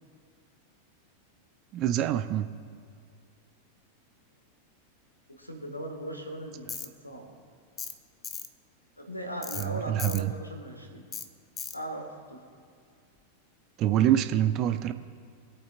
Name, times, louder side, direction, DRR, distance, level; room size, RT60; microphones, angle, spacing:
voice 1, 1.7-2.5 9.6-10.3 13.8-14.9, right 11 dB, 35° right, 10 dB, 0.6 m, -25 dB
voice 2, 5.4-6.7 7.0-7.3 9.0-11.1 11.7-12.4, right 1 dB, 85° left, 2 dB, 1.8 m, -38 dB
Tools, 6.7-6.9 7.8-8.0 8.2-8.5 9.4-9.7 10.0-10.2 11.1-11.3 11.6-11.8, left 7 dB, 25° left, 0.7 m, -37 dB
25.0 x 8.6 x 2.5 m, 2.3 s
figure-of-eight pair, 90°, 0 cm